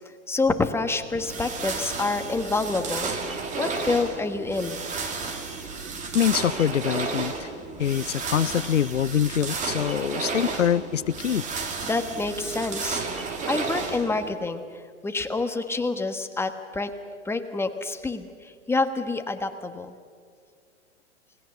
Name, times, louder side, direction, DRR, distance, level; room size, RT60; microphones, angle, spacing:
voice 1, 0.3-3.3 3.6-4.8 11.8-14.6 15.0-16.9 17.2-19.9, left 3 dB, 5° left, 1.4 m, -27 dB
sound 1, 1.2-14.3, right 4 dB, 20° right, 2.6 m, -32 dB
voice 2, 6.1-7.5 7.8-11.4, left 9 dB, 90° left, 0.6 m, -24 dB
28.5 x 19.5 x 7.1 m
hypercardioid pair, 115°, 36 cm